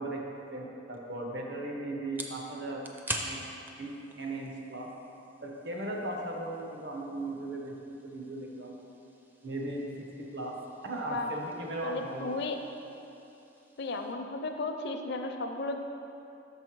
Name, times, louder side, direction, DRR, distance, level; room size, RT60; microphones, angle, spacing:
voice 1, 0.0-2.9 3.2-3.4 3.8-4.9 5.4-8.8 9.4-10.6 10.8-12.3, right 2 dB, 65° right, 0 dB, 0.9 m, -37 dB
sound 1, 0.9-14.1, right 1 dB, 10° right, 0.4 m, -46 dB
voice 2, 11.8-12.6 13.8-15.8, left 3 dB, 60° left, 5 dB, 0.5 m, -34 dB
6.2 x 5.4 x 4.6 m, 2.8 s
head